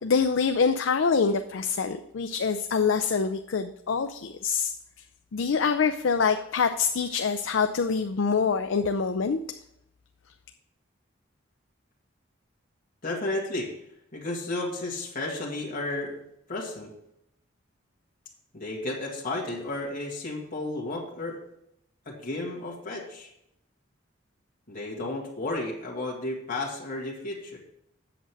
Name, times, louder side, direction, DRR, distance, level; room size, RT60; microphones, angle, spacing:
voice 1, 0.0-4.7 5.3-9.4, left 5 dB, 65° left, 8 dB, 0.5 m, -25 dB
voice 2, 13.0-13.7 14.1-16.2 16.5-16.9 18.5-21.4 22.1-23.3 24.7-27.6, left 2 dB, 45° left, -4 dB, 2.0 m, -33 dB
8.0 x 7.4 x 4.7 m, 0.77 s
head